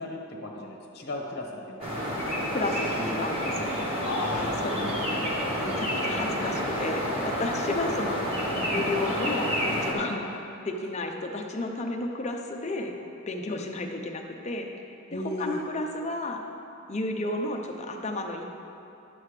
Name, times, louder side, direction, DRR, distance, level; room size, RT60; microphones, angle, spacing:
voice 1, 0.0-2.2 2.9-3.1 4.0-5.1 15.1-15.6, left 2 dB, 50° left, 0 dB, 1.1 m, -35 dB
sound 1, 1.8-9.9, equal, 25° right, 1.3 m, -29 dB
voice 2, 2.5-3.8 4.4-4.9 5.6-12.9 13.3-16.4 16.9-18.4, left 2 dB, 30° left, 3 dB, 0.6 m, -32 dB
10.5 x 7.8 x 3.3 m, 2.8 s
head